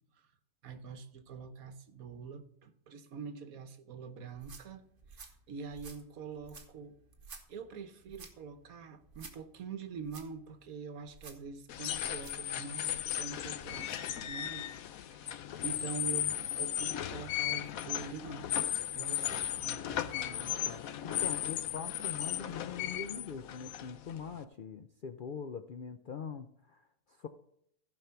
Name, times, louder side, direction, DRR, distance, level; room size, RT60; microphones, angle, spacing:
voice 1, 0.6-4.8 5.1-7.0 7.5-18.5 18.9-20.6, right 5 dB, 75° right, 1.4 m, -45 dB
sound 1, 4.3-12.5, right 4 dB, 55° right, 1.7 m, -54 dB
sound 2, 11.7-24.4, left 11 dB, 80° left, 1.1 m, -36 dB
voice 2, 20.1-27.3, left 6 dB, 60° left, 0.5 m, -43 dB
15.5 x 5.4 x 5.7 m
omnidirectional pair, 1.5 m